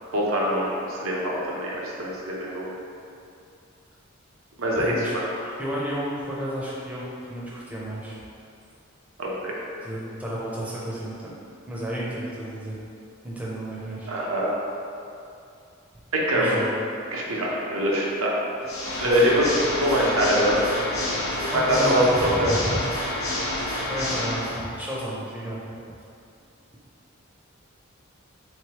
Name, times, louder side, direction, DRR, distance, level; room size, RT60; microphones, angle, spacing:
voice 1, 0.1-2.6 4.6-5.2 9.2-9.5 14.1-14.5 16.1-16.6 17.1-18.4 19.0-20.6 21.4-22.0 22.4-22.5, equal, 80° right, -4 dB, 0.7 m, -24 dB
voice 2, 4.8-8.2 9.8-11.3 11.7-12.8 13.2-14.1 16.3-16.7 19.0-19.3 21.5-22.8 23.9-25.6, equal, 5° right, -6 dB, 0.6 m, -32 dB
Water / Mechanisms, 18.6-24.6, left 1 dB, 80° left, 0.8 m, -29 dB
4.0 x 3.2 x 2.9 m, 2.6 s
head